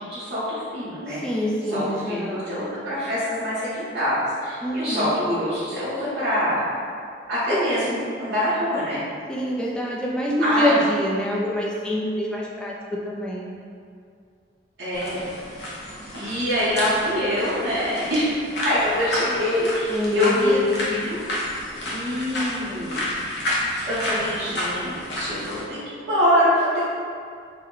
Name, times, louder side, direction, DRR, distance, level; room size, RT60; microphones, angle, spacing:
voice 1, 0.0-1.2 1.7-6.6 7.3-9.0 10.4-10.8 14.8-15.3 16.1-18.4 18.6-21.2 21.9-23.0 23.8-26.9, equal, 70° right, -12 dB, 0.9 m, -25 dB
voice 2, 1.2-2.7 4.6-5.1 7.5-7.8 9.3-12.7 13.0-13.5 19.9-20.7, left 1 dB, 5° left, -4 dB, 0.4 m, -25 dB
sound 1, 14.9-25.6, left 1 dB, 70° left, 0.8 m, -30 dB
3.3 x 2.1 x 3.7 m, 2.3 s
head